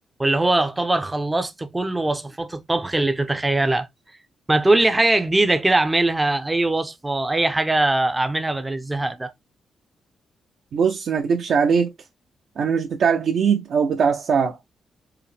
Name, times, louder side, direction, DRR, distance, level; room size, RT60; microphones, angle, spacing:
voice 1, 0.2-3.9 4.5-9.3, right 2 dB, 15° right, 0.5 m, -21 dB
voice 2, 10.7-11.9 12.6-14.6, right 6 dB, 60° right, 0.6 m, -20 dB
4.8 x 2.1 x 3.3 m
cardioid pair, 135°, 0 cm